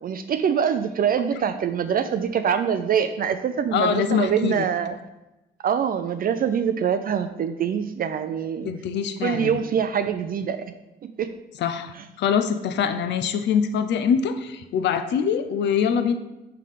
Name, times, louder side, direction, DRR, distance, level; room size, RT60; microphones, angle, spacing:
voice 1, 0.0-5.0 5.6-8.7 9.2-10.6 11.0-11.3 11.9-12.0, right 8 dB, 45° right, 9 dB, 0.4 m, -24 dB
voice 2, 3.7-4.6 8.7-9.6 11.6-16.1, left 7 dB, 60° left, 9 dB, 0.5 m, -24 dB
5.6 x 3.8 x 4.9 m, 0.98 s
cardioid pair, 90°, 20 cm